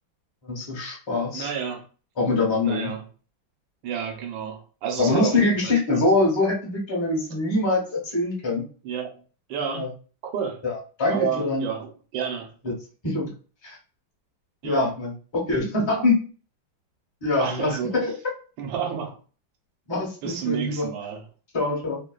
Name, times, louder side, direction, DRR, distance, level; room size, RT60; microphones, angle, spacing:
voice 1, 0.4-1.5 2.2-2.9 5.0-8.7 9.6-9.9 10.6-11.6 13.0-13.3 13.6-13.8 14.6-16.2 17.2-18.1 19.9-20.9 21.5-22.0, left 2 dB, 20° left, 0.7 m, -24 dB
voice 2, 1.3-1.8 2.6-3.0 3.8-6.0 8.8-9.2 9.5-9.9 10.2-10.6 11.1-12.5 14.6-14.9 16.0-16.1 17.4-17.9 18.6-19.2 20.2-21.2, right 7 dB, 75° right, 1.5 m, -30 dB
3.5 x 2.3 x 2.3 m
omnidirectional pair, 2.1 m